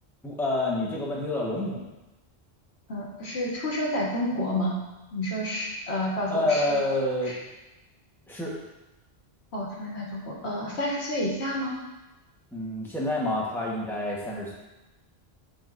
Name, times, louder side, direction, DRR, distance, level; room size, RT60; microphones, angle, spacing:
voice 1, 0.2-1.9 6.3-7.3 8.3-8.5 12.5-14.5, left 1 dB, ahead, -5 dB, 1.2 m, -28 dB
voice 2, 2.9-4.8 5.1-6.8 9.5-11.7, left 1 dB, 85° left, -4 dB, 1.6 m, -29 dB
10.0 x 3.8 x 2.6 m, 1.0 s
omnidirectional pair, 1.1 m